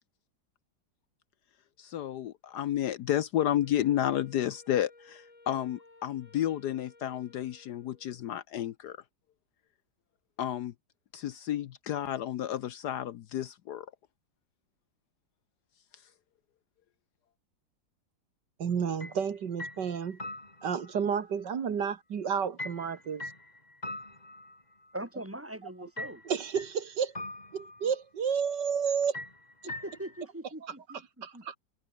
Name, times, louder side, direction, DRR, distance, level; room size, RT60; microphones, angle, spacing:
voice 1, 1.8-9.0 10.4-10.7 11.1-13.9, left 11 dB, 65° left, 1.2 m, -31 dB
Wind instrument woodwind instrument, 3.6-8.3, left 2 dB, 90° left, 7.6 m, -58 dB
voice 2, 18.6-20.2 20.6-23.3 26.3-27.1 27.5-29.2 31.2-31.6, right 7 dB, 65° right, 2.2 m, -31 dB
sound 1, 19.0-19.2 19.6-21.0 22.6-24.9 26.0-26.8 27.1-28.0 29.1-30.2, left 2 dB, 20° left, 3.8 m, -42 dB
voice 3, 24.9-26.2 29.6-31.6, right 1 dB, 5° right, 2.5 m, -41 dB
omnidirectional pair, 2.0 m